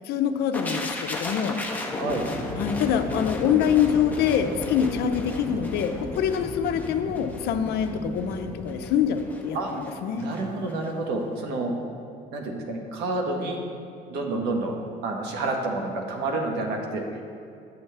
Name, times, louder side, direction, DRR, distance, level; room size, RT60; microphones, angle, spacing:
voice 1, 0.1-1.6 2.6-10.3, left 8 dB, 75° left, 7 dB, 0.6 m, -25 dB
sound 1, 0.5-10.4 10.7-10.9, left 2 dB, 10° left, 0.9 m, -34 dB
voice 2, 1.9-2.2 9.5-9.7 10.2-11.7 12.3-13.6 14.1-17.2, right 2 dB, 85° right, 2 dB, 1.2 m, -29 dB
9.9 x 6.9 x 3.4 m, 2.5 s
cardioid pair, 110°, 17 cm